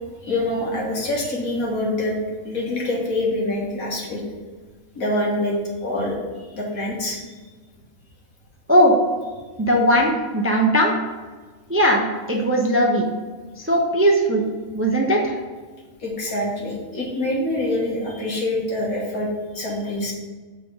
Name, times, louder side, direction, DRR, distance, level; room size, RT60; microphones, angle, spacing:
voice 1, 0.2-2.1 2.4-4.2 5.0-5.5 5.8-6.2 6.5-7.2 16.0-19.3 19.6-20.1, left 1 dB, 85° left, -3 dB, 2.1 m, -25 dB
voice 2, 9.6-10.9 11.7-13.1 13.7-14.4 14.7-15.4, equal, 15° right, 0 dB, 0.5 m, -18 dB
6.8 x 3.6 x 6.1 m, 1.4 s
omnidirectional pair, 1.5 m